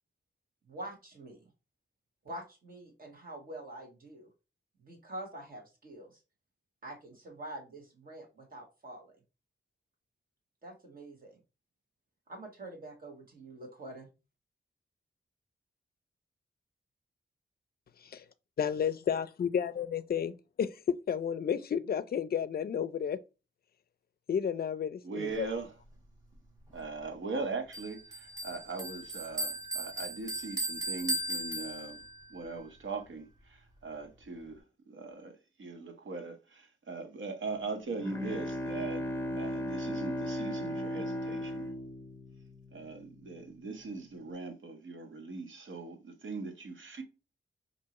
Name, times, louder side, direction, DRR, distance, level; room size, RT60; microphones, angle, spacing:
voice 1, 0.7-1.5 2.2-4.3 4.8-6.2 6.8-9.1 10.6-11.4 12.3-14.1, right 1 dB, 45° right, 1.5 m, -46 dB
voice 2, 18.6-23.2 24.3-25.5, left 8 dB, 50° left, 0.4 m, -32 dB
voice 3, 25.0-25.7 26.7-32.0 32.3-35.3 35.6-39.0 39.3-41.7 42.7-47.0, right 4 dB, 85° right, 1.0 m, -40 dB
Bell, 27.7-32.2, right 1 dB, 20° right, 1.3 m, -37 dB
Bowed string instrument, 37.7-43.1, left 1 dB, 10° left, 0.6 m, -36 dB
4.6 x 2.8 x 2.9 m
wide cardioid pair, 155°, 20 cm